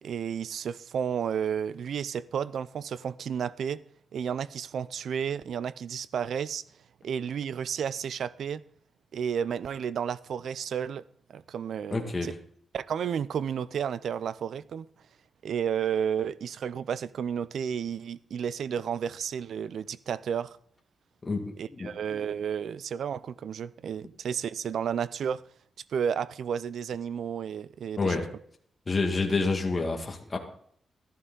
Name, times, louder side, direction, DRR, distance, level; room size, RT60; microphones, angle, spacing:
voice 1, 0.0-3.8 4.1-6.6 7.0-8.6 9.1-11.0 11.3-12.3 12.7-14.9 15.4-20.6 21.6-25.4 25.9-28.2, right 8 dB, 70° right, 0.4 m, -32 dB
voice 2, 11.9-12.3 21.3-21.9 28.0-28.3 28.9-30.4, left 3 dB, 30° left, 1.9 m, -28 dB
13.5 x 11.5 x 3.9 m
cardioid pair, 110°, 0 cm